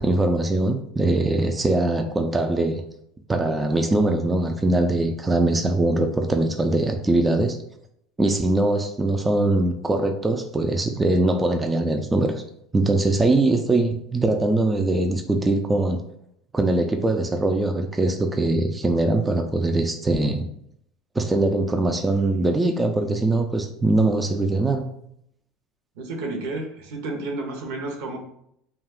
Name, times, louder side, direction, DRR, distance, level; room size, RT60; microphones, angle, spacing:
voice 1, 0.0-2.8 3.3-7.6 8.2-12.4 12.7-16.0 16.5-20.5 21.2-24.9, right 2 dB, 15° right, 4 dB, 0.3 m, -22 dB
voice 2, 26.0-28.2, right 2 dB, 80° right, 2 dB, 0.7 m, -31 dB
2.3 x 2.3 x 3.5 m, 0.72 s
supercardioid pair, 105°, 0 cm